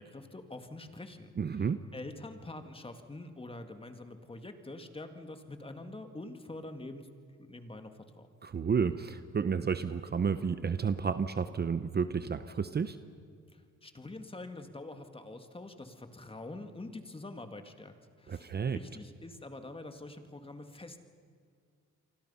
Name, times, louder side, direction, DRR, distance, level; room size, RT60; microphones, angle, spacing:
voice 1, 0.0-7.1 7.4-8.3 13.5-21.0, left 2 dB, 20° left, 7 dB, 2.1 m, -46 dB
voice 2, 1.4-1.8 8.4-13.0 18.3-18.8, right 6 dB, 35° right, 11 dB, 0.9 m, -31 dB
28.5 x 24.5 x 5.7 m, 2.1 s
cardioid pair, 90°, 30 cm